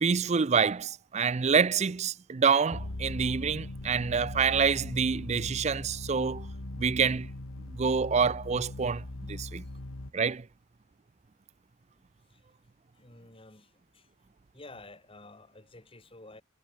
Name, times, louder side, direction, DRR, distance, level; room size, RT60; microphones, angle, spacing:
voice 1, 0.0-6.5 6.8-7.3 7.7-9.6 10.1-10.4, right 6 dB, 30° right, 0.4 m, -27 dB
sound 1, 2.7-10.1, left 1 dB, 80° left, 1.7 m, -40 dB
voice 2, 13.0-14.1 14.5-16.4, left 2 dB, 25° left, 2.2 m, -51 dB
head